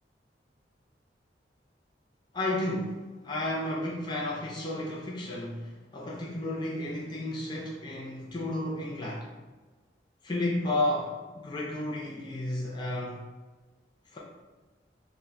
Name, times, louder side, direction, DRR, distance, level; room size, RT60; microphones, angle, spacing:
voice 1, 2.3-9.3 10.2-13.2 14.1-14.2, left 1 dB, 25° left, -4 dB, 0.4 m, -32 dB
4.3 x 2.2 x 2.6 m, 1.3 s
head